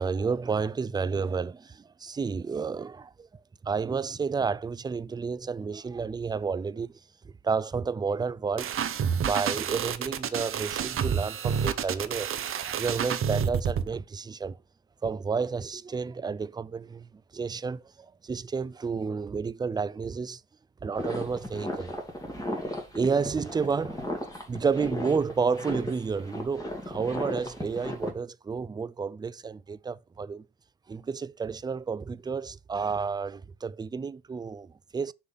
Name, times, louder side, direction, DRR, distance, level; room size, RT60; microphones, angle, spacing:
voice 1, 0.0-3.3 3.6-7.0 7.4-8.7 9.2-14.6 15.0-17.1 17.3-20.4 20.8-21.9 22.9-30.4 30.9-35.1, right 5 dB, 15° right, 0.4 m, -31 dB
sound 1, 8.6-13.9, right 7 dB, 45° right, 0.9 m, -29 dB
sound 2, 20.9-28.1, left 1 dB, 10° left, 2.4 m, -35 dB
6.3 x 3.8 x 5.6 m
supercardioid pair, 65°, 29 cm